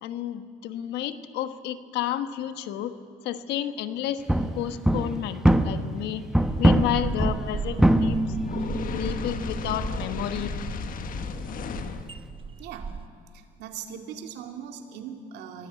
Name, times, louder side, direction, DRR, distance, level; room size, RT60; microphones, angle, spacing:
voice 1, 0.0-3.0 3.2-4.3 4.5-6.3 6.6-8.4 8.9-10.5, left 11 dB, 85° left, 10 dB, 1.3 m, -31 dB
sound 1, 4.3-6.1 6.3-12.2, right 1 dB, 5° right, 1.0 m, -25 dB
sound 2, 6.5-13.1, right 5 dB, 30° right, 0.9 m, -36 dB
Fire, 8.5-12.1, left 7 dB, 55° left, 1.4 m, -35 dB
voice 2, 12.6-13.0 13.3-15.7, right 8 dB, 85° right, 5 dB, 2.5 m, -40 dB
26.0 x 17.5 x 9.1 m, 2.2 s
cardioid pair, 110°, 17 cm